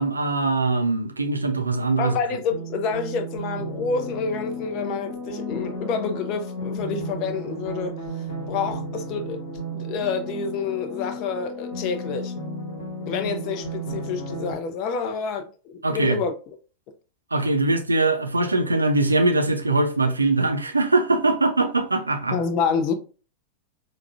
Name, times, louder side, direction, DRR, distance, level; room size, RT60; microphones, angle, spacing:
voice 1, 0.0-2.1 15.8-16.2 17.3-22.4, right 2 dB, 80° right, 0.4 m, -22 dB
voice 2, 2.0-8.0 8.5-9.4 9.7-12.4 13.1-16.3 22.3-22.9, left 5 dB, 40° left, 0.5 m, -28 dB
sound 1, 2.5-14.5, equal, 60° left, 1.1 m, -33 dB
4.7 x 2.2 x 2.3 m
figure-of-eight pair, 90°, 0 cm